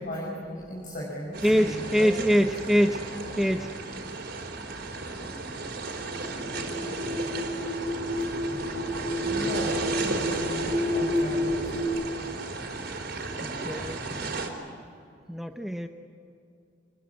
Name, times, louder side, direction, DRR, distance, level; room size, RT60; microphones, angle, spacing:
voice 1, 0.0-2.1 4.1-4.2 9.2-9.8 10.1-11.9, equal, 50° left, -3 dB, 5.6 m, -37 dB
sound 1, 1.3-14.5, right 3 dB, 60° right, 4.1 m, -34 dB
voice 2, 1.4-3.0 3.4-3.7 13.4-14.1 15.3-15.9, equal, ahead, 5 dB, 0.9 m, -24 dB
sound 2, 5.9-11.8, left 1 dB, 65° left, 4.6 m, -30 dB
27.5 x 20.0 x 9.6 m, 2.5 s
head